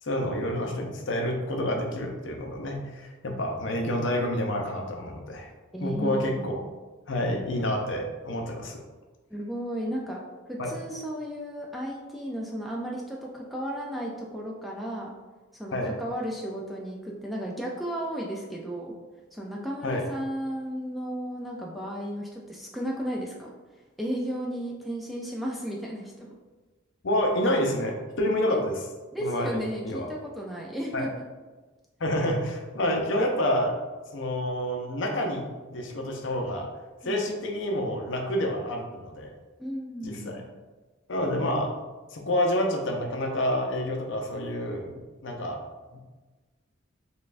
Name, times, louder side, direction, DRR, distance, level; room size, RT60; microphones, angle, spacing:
voice 1, 0.0-5.5 5.8-6.6 7.1-8.8 10.6-10.7 15.7-15.9 19.8-20.0 27.0-28.8 29.2-29.5 29.8-30.1 30.9-31.1 32.0-33.8 34.1-36.7 37.0-39.3 40.0-40.4 41.1-41.7 42.1-44.9 45.2-45.6 45.9-46.0, left 1 dB, 60° left, 1 dB, 0.6 m, -28 dB
voice 2, 5.7-6.7 9.3-10.2 10.5-15.1 15.5-18.9 19.3-23.5 24.0-26.3 28.5-28.6 29.1-31.3 37.0-37.2 39.6-40.4, equal, ahead, -3 dB, 0.3 m, -34 dB
5.1 x 2.3 x 2.5 m, 1.3 s
head